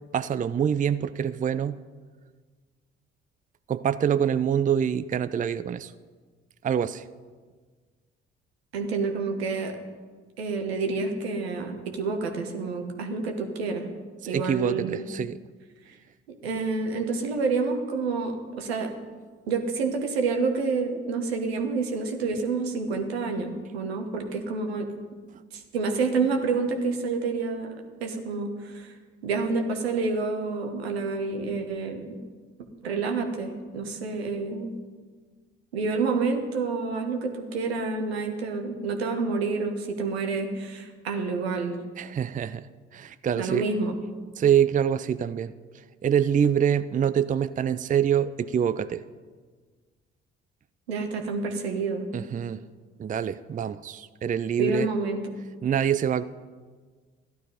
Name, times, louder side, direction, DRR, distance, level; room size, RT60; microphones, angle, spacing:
voice 1, 0.1-1.8 3.7-5.9 6.6-7.0 14.2-15.4 42.0-42.7 42.9-43.7 44.4-45.5 46.0-49.0 52.1-52.6 53.0-54.9 55.6-56.2, right 8 dB, 25° right, 14 dB, 0.5 m, -25 dB
voice 2, 8.7-9.8 10.4-13.9 14.3-15.0 16.4-18.9 19.5-24.9 25.5-28.9 29.2-32.1 32.8-34.7 35.7-41.8 43.3-43.9 50.9-52.1 54.6-55.2, right 4 dB, 85° right, 4 dB, 1.2 m, -28 dB
13.5 x 11.5 x 5.1 m, 1.5 s
figure-of-eight pair, 45°, 30 cm